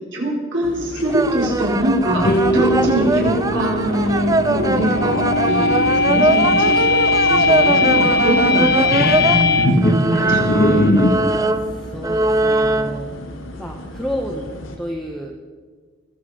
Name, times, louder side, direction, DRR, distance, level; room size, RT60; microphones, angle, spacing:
voice 1, 0.1-10.8, equal, 65° right, -3 dB, 4.7 m, -23 dB
sound 1, 0.6-14.8, left 1 dB, 75° left, 1.7 m, -35 dB
sound 2, 1.1-9.4 9.8-13.0, right 2 dB, 15° right, 0.5 m, -22 dB
sound 3, 2.1-11.2, left 2 dB, 50° left, 1.1 m, -18 dB
voice 2, 11.5-13.2 13.6-15.3, equal, ahead, 0 dB, 0.9 m, -30 dB
21.0 x 8.1 x 5.0 m, 1.5 s
head